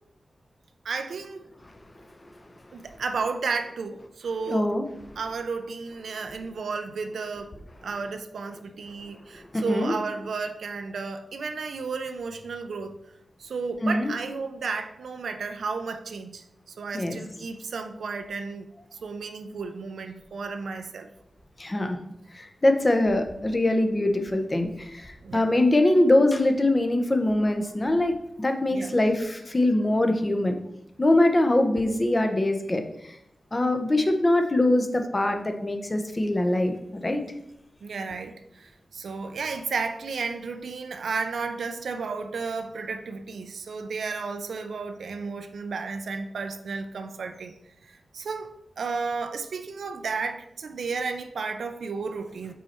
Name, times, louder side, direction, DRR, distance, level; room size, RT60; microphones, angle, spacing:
voice 1, 0.8-1.5 2.7-4.7 5.2-7.6 7.8-13.0 13.4-18.7 19.0-21.1 25.2-25.5 28.7-28.9 37.8-47.5 47.8-52.5, right 4 dB, 90° right, 7 dB, 0.4 m, -33 dB
voice 2, 4.5-4.8 9.5-9.9 13.8-14.1 16.9-17.2 21.6-22.0 22.3-30.6 31.0-33.2 33.5-36.7 37.0-37.2, left 1 dB, 25° left, 5 dB, 0.7 m, -23 dB
5.4 x 4.2 x 4.3 m, 0.81 s
wide cardioid pair, 105°, 0 cm